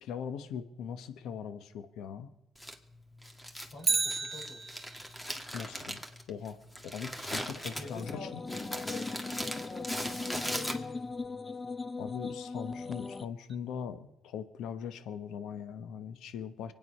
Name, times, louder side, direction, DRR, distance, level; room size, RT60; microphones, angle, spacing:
voice 1, 0.0-2.3 5.5-6.6 6.8-8.4 12.0-16.7, left 7 dB, 85° left, 11 dB, 1.1 m, -40 dB
Crumpling crinkling, 2.6-11.2, equal, 5° left, 1.7 m, -40 dB
voice 2, 3.7-4.7 7.4-11.9, left 2 dB, 70° left, 0 dB, 4.7 m, -48 dB
Bicycle, 3.8-5.2 13.5-13.6, right 4 dB, 30° right, 0.7 m, -32 dB
sound 1, 7.8-13.3, left 4 dB, 25° left, 0.5 m, -39 dB
24.5 x 9.3 x 5.5 m, 0.93 s
cardioid pair, 90°, 0 cm